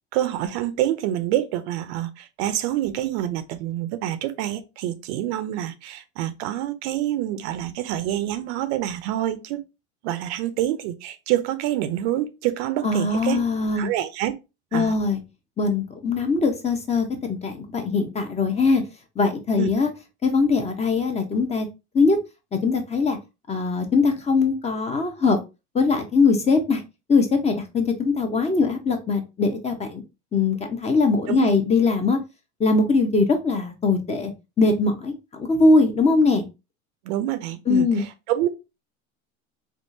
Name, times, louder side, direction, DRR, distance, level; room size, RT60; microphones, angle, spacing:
voice 1, 0.1-9.6 10.0-13.4 13.7-14.3 14.7-14.9 19.6-19.7 31.3-31.5 37.0-38.5, right 13 dB, 70° right, 0.6 m, -27 dB
voice 2, 12.8-13.9 14.7-15.2 15.6-18.8 19.2-19.9 20.2-21.7 21.9-22.2 22.5-23.2 23.5-25.4 25.7-26.8 27.1-30.0 30.3-32.2 32.6-34.3 34.6-36.5 37.7-38.0, left 4 dB, 20° left, 0.6 m, -21 dB
3.6 x 2.4 x 2.6 m
supercardioid pair, 110°, 34 cm